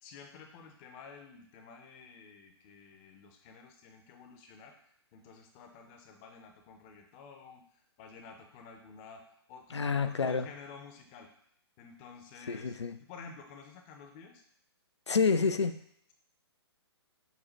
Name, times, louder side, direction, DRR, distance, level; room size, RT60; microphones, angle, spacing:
voice 1, 0.0-9.2 9.5-11.3 11.8-14.4, left 5 dB, 25° left, 4 dB, 0.6 m, -51 dB
voice 2, 9.7-10.5 12.5-13.0 15.1-15.7, left 5 dB, 85° left, 10 dB, 0.4 m, -28 dB
6.5 x 2.2 x 3.1 m, 0.67 s
figure-of-eight pair, 125°, 14 cm